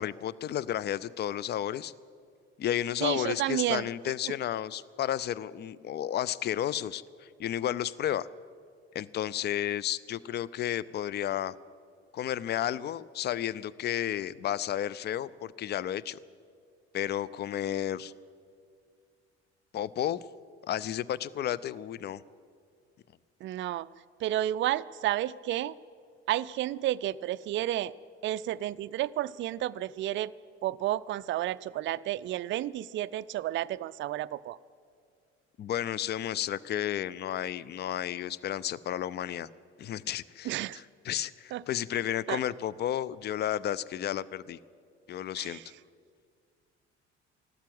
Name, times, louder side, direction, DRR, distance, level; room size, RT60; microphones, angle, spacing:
voice 1, 0.0-1.9 2.6-8.3 8.9-11.5 12.1-16.2 16.9-18.1 19.7-20.2 20.7-22.2 35.6-39.5 39.8-44.6 45.1-45.6, left 11 dB, 30° left, 21 dB, 0.5 m, -32 dB
voice 2, 3.0-3.9 4.3-4.4 23.4-23.9 24.2-25.7 26.3-27.9 28.2-30.3 30.6-34.6 40.4-40.8 41.5-41.6 42.3-42.4 45.4-45.6, right 13 dB, 35° right, 14 dB, 0.4 m, -31 dB
14.5 x 12.5 x 7.9 m, 2.3 s
figure-of-eight pair, 55°, 33 cm